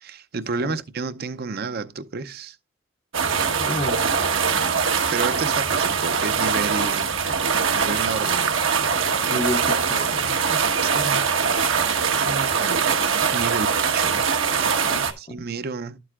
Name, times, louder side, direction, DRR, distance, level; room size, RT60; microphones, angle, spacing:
voice 1, 0.0-2.6 5.1-7.1 7.7-8.5 10.8-11.3 12.1-12.8 13.3-14.2 14.5-14.8 15.2-16.0, right 4 dB, 50° right, 0.6 m, -30 dB
sound 1, 3.1-15.1, right 6 dB, 80° right, 1.2 m, -22 dB
voice 2, 3.6-4.1 9.3-10.4 14.9-15.5, left 2 dB, 30° left, 0.6 m, -31 dB
12.0 x 7.8 x 2.4 m
head